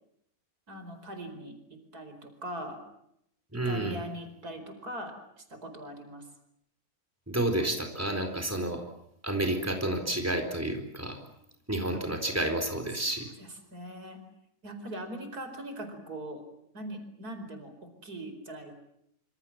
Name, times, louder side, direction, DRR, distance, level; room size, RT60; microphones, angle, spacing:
voice 1, 0.7-2.8 3.5-6.3 11.9-12.0 13.4-14.2 14.6-16.4 16.7-18.7, right 1 dB, 80° right, 7 dB, 5.2 m, -41 dB
voice 2, 3.5-4.0 7.3-8.8 9.2-11.2 11.7-13.3, right 1 dB, 10° right, 4 dB, 4.2 m, -30 dB
26.5 x 25.5 x 7.4 m, 0.75 s
omnidirectional pair, 1.6 m